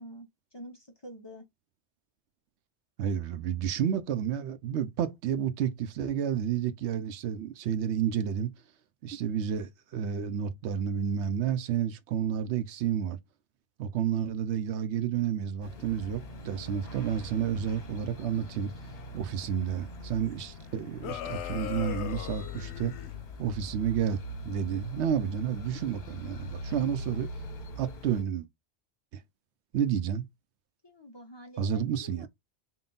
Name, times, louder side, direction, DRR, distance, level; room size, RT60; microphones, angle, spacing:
voice 1, 0.0-1.4 30.8-32.3, equal, 30° left, 0.6 m, -47 dB
voice 2, 3.0-8.5 9.0-13.2 13.8-18.7 19.1-22.9 23.4-27.3 27.8-28.5 29.7-30.3 31.6-32.3, right 8 dB, 80° right, 0.9 m, -30 dB
sound 1, 15.6-28.2, left 2 dB, 65° left, 1.2 m, -42 dB
sound 2, 21.0-23.1, left 11 dB, 90° left, 0.9 m, -38 dB
3.7 x 2.3 x 3.7 m
omnidirectional pair, 1.1 m